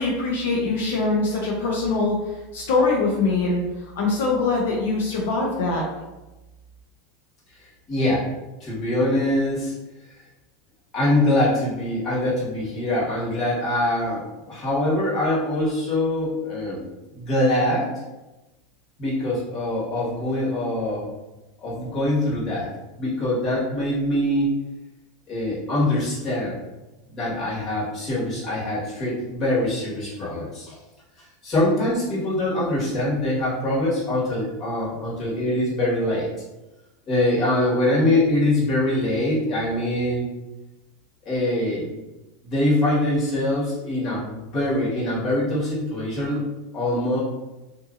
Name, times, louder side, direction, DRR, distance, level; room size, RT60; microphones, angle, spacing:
voice 1, 0.0-5.8, left 3 dB, 85° left, -2 dB, 0.6 m, -23 dB
voice 2, 7.9-8.3 8.6-9.7 10.9-16.8 17.1-17.9 19.0-21.1 21.6-22.7 23.0-24.5 25.3-26.6 27.1-30.7 31.4-36.3 37.1-40.2 41.2-42.0 42.4-46.4 46.7-47.2, left 1 dB, 35° left, -8 dB, 1.4 m, -23 dB
2.7 x 2.6 x 2.5 m, 1.0 s
supercardioid pair, 140°, 0 cm